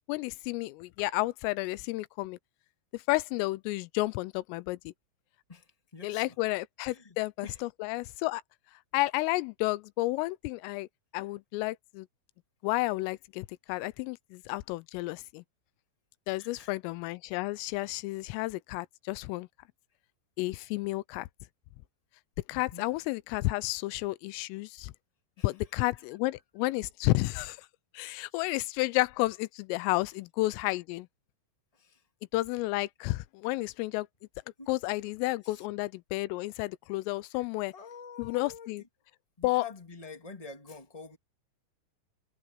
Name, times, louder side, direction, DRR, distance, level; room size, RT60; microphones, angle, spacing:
voice 1, 0.0-2.4 2.9-4.9 6.0-8.4 8.9-10.9 11.1-12.1 12.6-15.4 16.3-19.5 20.4-21.3 22.5-24.9 25.4-27.6 27.9-31.1 32.3-34.1 34.7-37.7 38.2-38.8 39.4-39.6, left 20 dB, 90° left, 3.3 m, -31 dB
voice 2, 5.5-6.4 6.8-7.2 7.4-7.6 16.4-16.7 22.5-22.9 25.4-26.0 28.2-28.4 31.7-32.0 34.6-34.7 35.4-35.6 37.3-37.4 37.7-38.9 39.4-41.2, left 5 dB, 40° left, 0.5 m, -48 dB
omnidirectional pair, 5.8 m